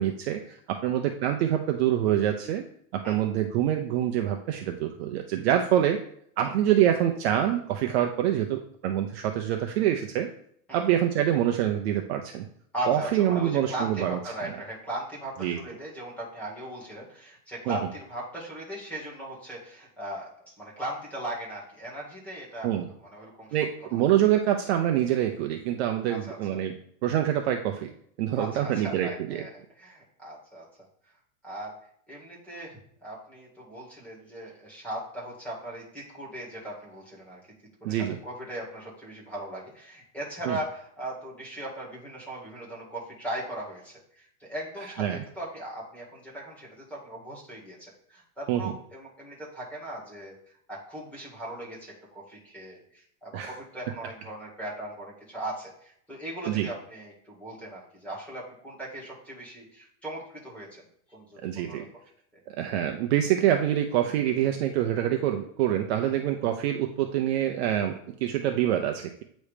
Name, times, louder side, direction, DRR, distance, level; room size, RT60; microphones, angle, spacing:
voice 1, 0.0-2.6 2.9-6.0 6.4-10.3 10.7-12.5 12.9-14.2 15.4-15.6 17.7-17.8 22.6-22.9 23.5-26.8 27.0-27.9 28.2-29.4 37.8-38.2 40.5-40.6 45.0-45.2 48.5-48.6 53.3-53.5 56.5-56.7 61.4-61.9 62.6-69.2, right 11 dB, 45° right, 5 dB, 0.5 m, -26 dB
voice 2, 12.7-22.7 23.1-23.5 26.1-26.6 28.4-30.7 31.4-31.7 32.1-37.4 37.8-50.4 50.7-60.8 61.1-61.9 62.3-62.4 66.0-66.2, right 1 dB, 5° left, -6 dB, 1.8 m, -38 dB
8.3 x 3.1 x 5.0 m, 0.66 s
supercardioid pair, 165°, 45 cm